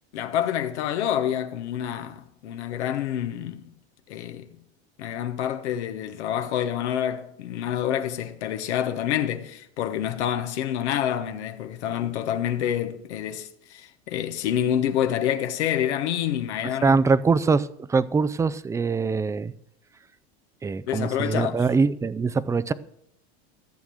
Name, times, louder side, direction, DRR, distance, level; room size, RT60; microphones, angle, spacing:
voice 1, 0.1-3.6 4.1-4.5 5.0-17.0 20.9-21.6, left 10 dB, 90° left, 1.3 m, -27 dB
voice 2, 16.8-19.5 20.6-22.7, right 4 dB, 10° right, 0.4 m, -23 dB
14.5 x 7.1 x 6.4 m
supercardioid pair, 115°, 33 cm